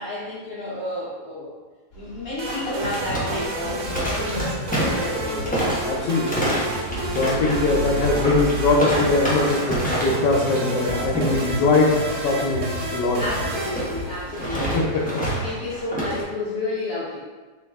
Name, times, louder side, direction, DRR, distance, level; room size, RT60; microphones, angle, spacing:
voice 1, 0.0-1.6 2.0-5.6 13.2-14.9 15.4-17.2, left 2 dB, 60° left, -8 dB, 1.0 m, -31 dB
sound 1, 1.9-14.8, equal, 40° left, 1.4 m, -34 dB
sound 2, 2.4-10.3 10.5-10.8 11.1-11.5 13.6-16.2, right 1 dB, 10° left, 0.4 m, -28 dB
sound 3, 2.4-14.6, right 2 dB, 65° right, 0.8 m, -32 dB
voice 2, 5.8-6.4 7.1-13.2 14.7-15.0, left 3 dB, 80° left, -4 dB, 1.3 m, -21 dB
3.9 x 2.9 x 3.4 m, 1.3 s
omnidirectional pair, 1.8 m